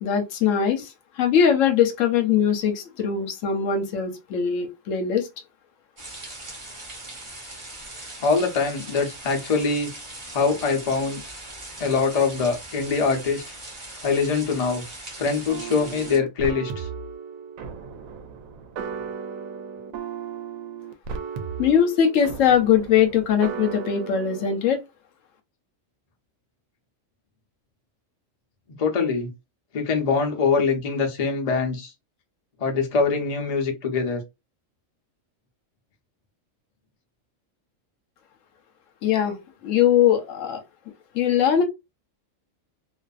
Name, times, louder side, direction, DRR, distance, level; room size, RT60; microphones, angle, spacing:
voice 1, 0.0-5.3 21.6-24.8 39.0-39.4 39.6-40.6 41.1-41.6, left 8 dB, 75° left, 1.0 m, -21 dB
sound 1, 6.0-16.2, right 2 dB, 30° right, 0.8 m, -40 dB
voice 2, 8.2-9.9 10.3-11.2 11.8-13.4 14.0-14.8 15.2-16.9 28.8-29.3 29.7-31.9 32.6-34.2, left 4 dB, 40° left, 0.5 m, -23 dB
sound 2, 15.5-24.6, right 6 dB, 90° right, 1.0 m, -35 dB
2.5 x 2.4 x 2.3 m
omnidirectional pair, 1.4 m